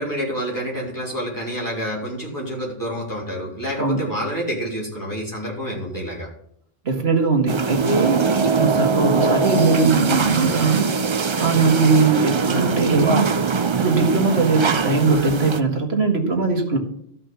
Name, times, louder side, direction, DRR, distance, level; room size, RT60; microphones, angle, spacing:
voice 1, 0.0-6.3, equal, 20° left, -5 dB, 4.0 m, -28 dB
voice 2, 6.9-10.9 11.4-13.3 13.8-16.8, right 4 dB, 85° right, 3 dB, 2.0 m, -20 dB
sound 1, 7.5-15.6, right 4 dB, 35° right, 0.5 m, -22 dB
13.5 x 5.4 x 5.8 m, 0.69 s
omnidirectional pair, 1.0 m